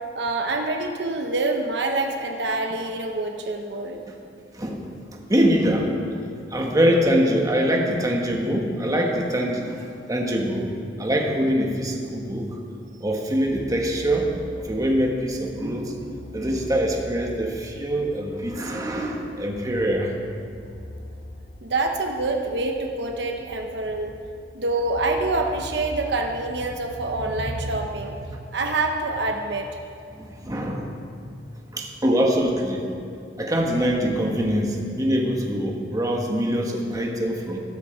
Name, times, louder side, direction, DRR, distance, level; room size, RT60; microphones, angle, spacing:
voice 1, 0.1-4.0 21.6-24.1 24.5-29.7, right 2 dB, 70° right, 3 dB, 1.0 m, -26 dB
voice 2, 5.1-10.7 11.0-12.6 13.0-20.1 27.2-27.3 30.1-31.0 31.7-32.9 33.4-37.6, equal, 20° right, 0 dB, 1.4 m, -24 dB
sound 1, 13.4-27.5, left 1 dB, 55° left, 1.0 m, -43 dB
14.0 x 13.0 x 4.4 m, 2.5 s
head